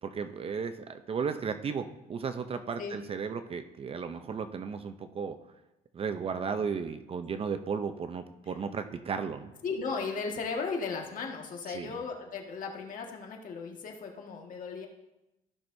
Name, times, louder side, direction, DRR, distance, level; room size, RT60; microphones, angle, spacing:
voice 1, 0.0-5.4 5.9-9.5 11.7-11.9, right 6 dB, 35° right, 9 dB, 0.6 m, -34 dB
voice 2, 9.6-14.9, left 4 dB, 50° left, 1 dB, 1.7 m, -36 dB
15.5 x 6.0 x 2.7 m, 0.94 s
cardioid pair, 110°, 17 cm